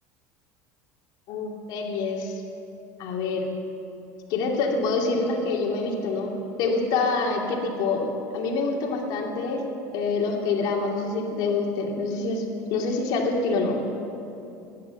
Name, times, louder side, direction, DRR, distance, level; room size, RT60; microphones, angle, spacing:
voice 1, 1.3-2.4 3.0-3.5 4.3-9.6 9.9-12.4 12.7-13.8, left 3 dB, 60° left, 1 dB, 2.5 m, -26 dB
16.0 x 10.5 x 7.7 m, 2.8 s
supercardioid pair, 115°, 8 cm